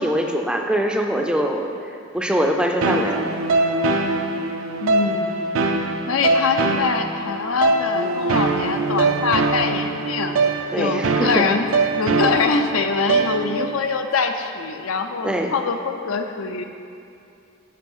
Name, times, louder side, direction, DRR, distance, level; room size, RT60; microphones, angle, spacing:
voice 1, 0.0-1.7 2.1-3.3 10.7-11.4 15.2-15.5, equal, 5° right, 2 dB, 0.4 m, -22 dB
sound 1, 2.8-13.8, right 3 dB, 70° right, 0.5 m, -22 dB
voice 2, 4.8-5.4 6.1-10.4 10.8-11.7 11.9-16.6, left 5 dB, 75° left, 6 dB, 0.5 m, -24 dB
7.6 x 4.9 x 5.4 m, 2.7 s
head